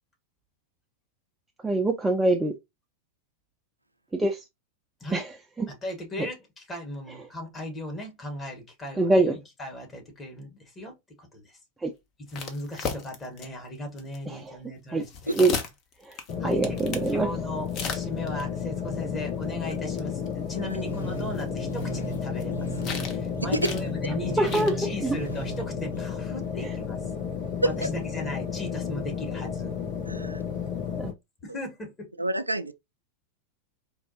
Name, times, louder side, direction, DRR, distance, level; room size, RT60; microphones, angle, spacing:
voice 1, 1.6-2.5 4.1-4.4 5.1-5.3 5.6-5.7 6.2-6.3 9.0-9.3 11.8-11.9 14.3-14.6 14.9-15.1 15.3-15.5 16.1-16.2 16.4-17.3 24.4-24.7 25.0-25.2 26.6-26.7, right 2 dB, 10° right, 0.5 m, -24 dB
voice 2, 5.7-11.6 12.3-15.6 16.4-16.8 17.1-22.7 23.0-27.0 27.6-29.7 31.4-32.1, left 1 dB, 20° left, 1.4 m, -37 dB
sound 1, 12.3-13.5 14.0-14.2 15.0-17.1 17.7-18.4 19.7-19.8 20.0-20.1 20.3-20.4 21.2-22.4 22.8-23.3 23.5-23.8 24.4-24.7, left 6 dB, 35° left, 0.8 m, -34 dB
sound 2, 16.3-31.1, left 7 dB, 55° left, 2.3 m, -32 dB
sound 3, 20.8-26.0, right 7 dB, 80° left, 0.8 m, -38 dB
voice 3, 32.2-32.7, right 1 dB, 85° right, 0.3 m, -27 dB
4.3 x 2.6 x 2.7 m
figure-of-eight pair, 90°, 0 cm